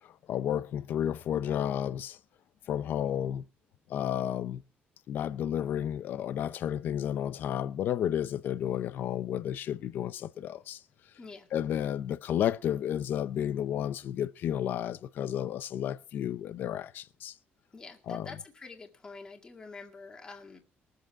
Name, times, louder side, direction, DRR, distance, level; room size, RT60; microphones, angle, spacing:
voice 1, 0.0-2.2 2.7-3.4 3.9-4.6 5.1-10.8 11.5-17.4 18.1-18.3, left 10 dB, 55° left, 0.6 m, -32 dB
voice 2, 17.7-20.6, left 3 dB, 20° left, 2.1 m, -46 dB
21.5 x 7.7 x 4.6 m
cardioid pair, 180°, 4 cm